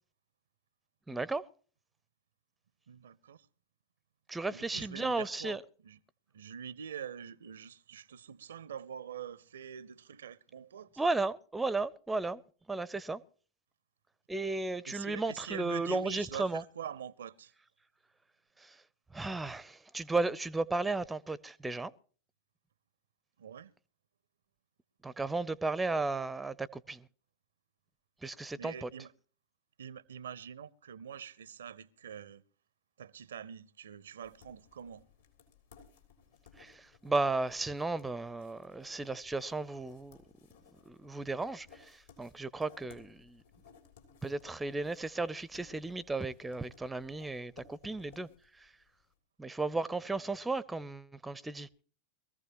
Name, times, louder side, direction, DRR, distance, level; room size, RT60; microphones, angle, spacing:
voice 1, 1.1-1.4 4.3-5.6 11.0-12.4 12.7-13.2 14.3-16.6 18.6-18.8 19.1-21.9 25.0-27.1 28.2-28.9 36.6-40.2 40.9-43.4 44.2-48.3 48.6-48.7 49.4-51.7, right 3 dB, 10° right, 0.6 m, -34 dB
voice 2, 2.9-3.5 4.5-5.6 5.8-6.0 6.3-10.9 14.9-17.5 23.4-23.7 28.6-29.1 29.8-32.4 33.0-35.0, right 8 dB, 65° right, 0.6 m, -45 dB
sound 1, 34.2-49.0, left 6 dB, 65° left, 3.3 m, -61 dB
22.5 x 15.0 x 3.0 m
figure-of-eight pair, 90°, 0 cm